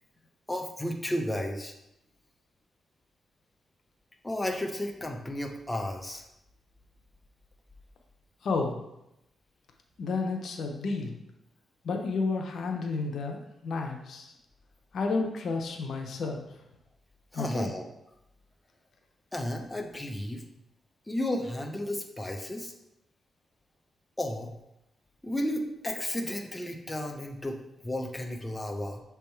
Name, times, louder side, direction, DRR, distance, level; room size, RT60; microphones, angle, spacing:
voice 1, 0.5-1.7 4.2-6.3 17.3-17.8 19.3-20.4 21.1-22.7 24.2-24.5 25.2-29.0, left 1 dB, 10° left, 2 dB, 0.7 m, -33 dB
voice 2, 8.4-8.8 10.0-11.2 11.8-14.3 14.9-16.4 17.3-17.7, left 3 dB, 70° left, 3 dB, 0.8 m, -31 dB
6.4 x 3.5 x 4.5 m, 0.85 s
cardioid pair, 95°, 0 cm